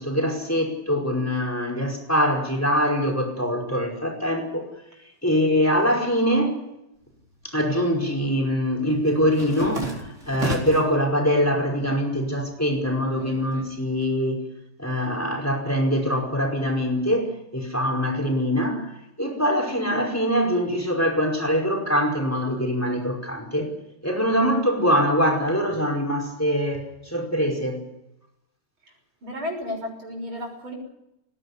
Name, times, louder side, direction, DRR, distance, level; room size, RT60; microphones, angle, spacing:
voice 1, 0.0-4.7 5.2-6.6 7.4-14.4 14.8-18.9 19.2-23.7 24.0-27.9, equal, 5° left, 1 dB, 5.0 m, -23 dB
sound 1, 7.1-7.9 8.2-11.0 11.4-12.1 12.4-14.0, right 2 dB, 35° right, 4.7 m, -33 dB
voice 2, 29.2-30.7, left 1 dB, 75° right, 1 dB, 7.2 m, -32 dB
19.5 x 17.0 x 9.8 m, 0.86 s
omnidirectional pair, 2.3 m